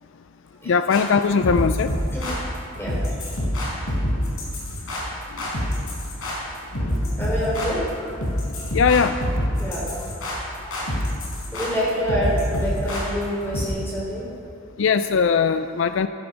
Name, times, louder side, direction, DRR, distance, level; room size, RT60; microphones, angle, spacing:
voice 1, 0.7-1.9 8.7-9.2 14.8-16.1, left 6 dB, 60° left, 11 dB, 0.4 m, -20 dB
sound 1, 0.9-13.7, equal, 75° left, 4.2 m, -27 dB
voice 2, 7.2-8.2 9.6-10.1 10.6-10.8 11.5-14.3 14.6-14.8, equal, 10° left, -5 dB, 3.9 m, -27 dB
15.0 x 11.5 x 5.8 m, 2.4 s
head